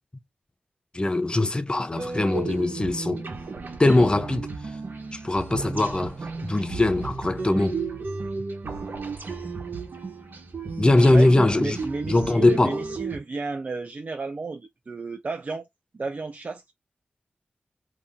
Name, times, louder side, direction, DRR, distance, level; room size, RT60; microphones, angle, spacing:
voice 1, 0.9-3.3 3.8-4.5 5.2-7.8 10.8-11.8 12.1-12.8, left 2 dB, 25° left, 0.7 m, -21 dB
sound 1, 1.9-13.2, right 4 dB, 70° right, 1.1 m, -34 dB
voice 2, 11.1-15.7 15.9-16.7, right 3 dB, 50° right, 0.5 m, -33 dB
2.9 x 2.6 x 3.5 m
cardioid pair, 60°, 3 cm